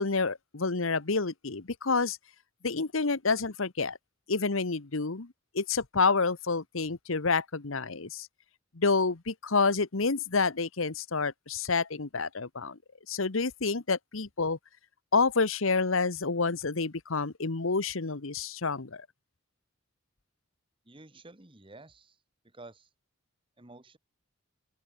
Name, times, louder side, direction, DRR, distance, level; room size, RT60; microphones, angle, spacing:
voice 1, 0.0-2.2 2.6-4.0 4.3-8.3 8.7-12.8 13.1-14.6 15.1-19.1, left 4 dB, 75° left, 1.2 m, -28 dB
voice 2, 20.9-22.1 22.5-22.9 23.6-24.0, right 2 dB, 25° right, 1.7 m, -51 dB
open air
head